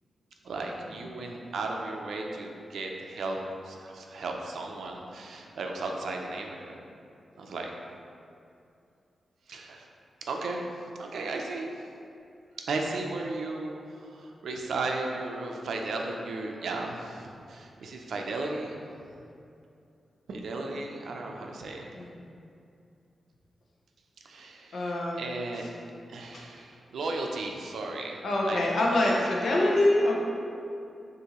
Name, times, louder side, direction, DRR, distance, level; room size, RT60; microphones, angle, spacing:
voice 1, 0.4-3.4 3.6-6.8 7.4-7.7 9.5-9.9 10.3-10.6 11.0-11.7 12.6-18.8 20.3-21.9 24.2-25.6 26.1-28.2 28.5-29.2, right 3 dB, 80° right, 1 dB, 0.5 m, -35 dB
voice 2, 24.7-25.2 26.3-26.4 28.2-30.2, left 1 dB, 60° left, -3 dB, 0.7 m, -25 dB
6.4 x 2.6 x 3.0 m, 2.6 s
wide cardioid pair, 180°, 0 cm